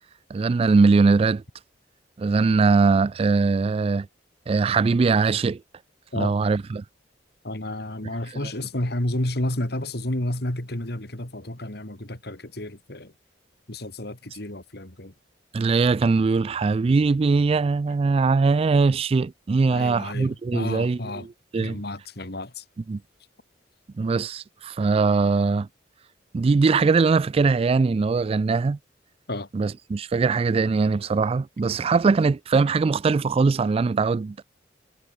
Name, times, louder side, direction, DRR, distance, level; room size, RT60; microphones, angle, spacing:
voice 1, 0.3-1.4 2.2-4.1 4.5-5.6 6.1-6.8 15.5-21.8 22.9-23.0 24.0-25.7 26.3-28.8 29.5-34.4, right 4 dB, 35° right, 0.3 m, -21 dB
voice 2, 7.4-13.1 13.7-15.1 19.7-21.3 21.6-22.6 29.3-29.5, left 1 dB, 65° left, 3.4 m, -31 dB
head